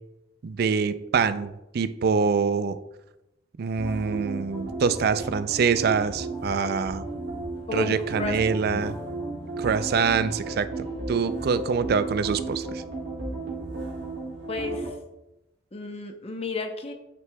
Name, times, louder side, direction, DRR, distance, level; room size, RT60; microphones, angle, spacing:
voice 1, 0.4-2.8 3.6-7.1 7.7-9.0 9.6-12.8, right 5 dB, 55° right, 13 dB, 0.4 m, -25 dB
sound 1, 3.8-14.9, right 3 dB, 75° right, 2.4 m, -34 dB
voice 2, 7.7-8.4 8.7-8.8 14.5-14.9 15.7-16.9, left 4 dB, 30° left, 5 dB, 0.7 m, -32 dB
9.2 x 6.0 x 2.2 m, 0.93 s
head